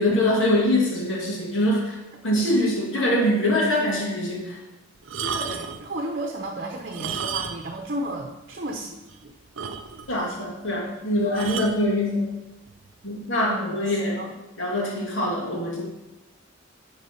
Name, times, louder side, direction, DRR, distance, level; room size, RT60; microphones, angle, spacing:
voice 1, 0.0-2.0 2.2-4.6 10.1-12.3 13.0-14.2 14.6-15.8, left 1 dB, 75° left, -3 dB, 2.1 m, -23 dB
sound 1, 5.0-5.9 6.8-7.8 8.1-8.2 8.7-8.8 9.1-9.2 9.6-10.2 11.3-11.8 12.7-12.9, right 6 dB, 80° right, 0.6 m, -32 dB
voice 2, 5.2-9.3 13.4-14.3, right 1 dB, 50° right, 2 dB, 0.9 m, -33 dB
10.5 x 4.0 x 5.7 m, 1.0 s
head